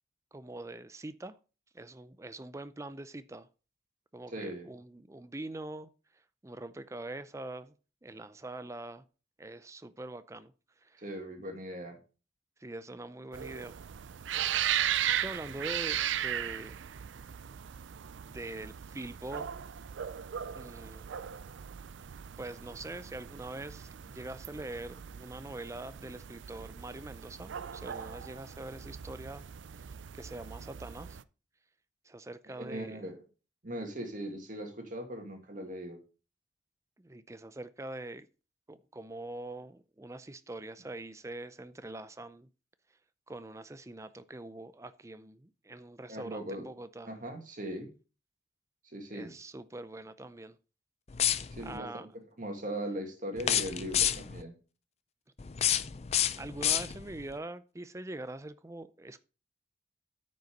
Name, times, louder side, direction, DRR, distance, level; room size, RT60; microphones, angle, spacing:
voice 1, 0.3-1.4 1.7-3.5 4.1-5.9 6.4-7.7 8.0-9.0 9.4-10.5 10.8-11.0 12.6-13.8 15.0-16.8 18.2-19.5 20.6-21.1 22.4-29.5 30.1-31.2 32.1-33.0 37.0-38.3 38.7-42.5 43.3-47.1 49.1-50.6 51.6-52.1 56.3-59.2, right 2 dB, 15° right, 0.5 m, -43 dB
voice 2, 4.3-4.7 11.0-12.0 32.5-33.2 33.6-36.0 46.1-46.7 47.1-47.9 48.9-49.3 51.5-54.5, right 1 dB, 45° right, 1.9 m, -39 dB
sound 1, 13.3-31.2, right 10 dB, 90° right, 0.4 m, -37 dB
sound 2, 51.1-51.8 53.4-54.4 55.4-57.2, left 10 dB, 35° left, 0.5 m, -29 dB
9.4 x 5.4 x 5.2 m
head